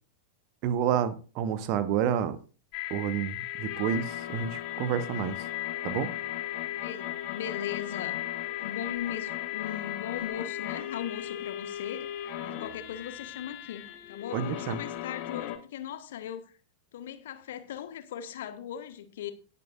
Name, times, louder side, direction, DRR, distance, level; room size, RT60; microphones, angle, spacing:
voice 1, 0.6-2.4 2.9-5.4 5.8-6.1 14.3-14.8, right 9 dB, 45° right, 1.2 m, -29 dB
sound 1, 2.7-15.6, left 13 dB, 40° left, 1.6 m, -36 dB
voice 2, 6.7-8.2 8.6-12.1 12.4-16.5 16.9-19.3, left 9 dB, 60° left, 1.5 m, -38 dB
18.0 x 8.5 x 2.5 m
figure-of-eight pair, 90°, 0 cm